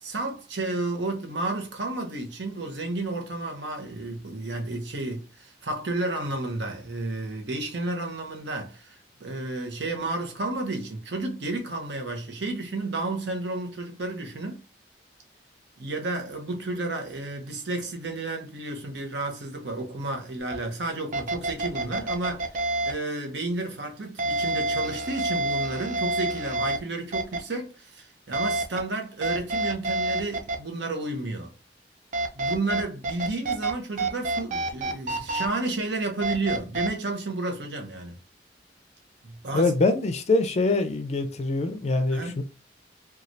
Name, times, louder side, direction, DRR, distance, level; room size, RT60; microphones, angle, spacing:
voice 1, 0.0-14.6 15.8-31.5 32.3-38.2 39.2-39.7 42.1-42.4, right 2 dB, 75° right, 0.8 m, -32 dB
sound 1, 20.5-20.6 21.1-22.9 24.2-26.8 27.1-27.4 28.3-28.8 29.2-30.6 32.1-33.7 34.0-35.5 36.2-36.9, right 2 dB, 45° right, 0.5 m, -27 dB
voice 2, 39.5-42.4, left 2 dB, 40° left, 0.4 m, -24 dB
3.1 x 2.3 x 2.6 m
head